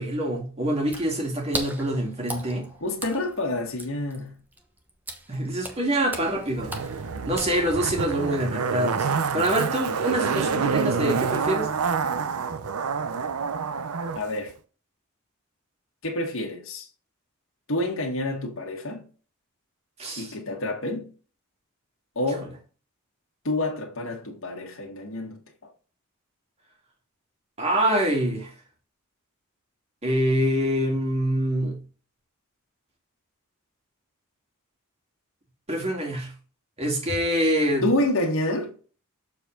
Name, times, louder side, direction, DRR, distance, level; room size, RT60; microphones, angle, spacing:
voice 1, 0.0-2.7 5.3-6.7 7.3-11.7 20.0-20.3 27.6-28.5 30.0-31.8 35.7-36.3 36.8-37.9, right 1 dB, 30° right, 2.2 m, -25 dB
Water / Splash splatter, 0.8-8.0, right 1 dB, 10° right, 1.0 m, -39 dB
voice 2, 2.8-4.4 14.1-14.5 16.0-16.9 17.7-19.1 20.2-21.1 22.1-22.5 23.4-25.7 37.1-37.2 37.8-38.7, left 1 dB, 65° left, 1.7 m, -28 dB
Zipper (clothing), 6.6-14.2 14.5-14.6, right 5 dB, 90° right, 0.6 m, -27 dB
7.1 x 4.5 x 3.8 m
head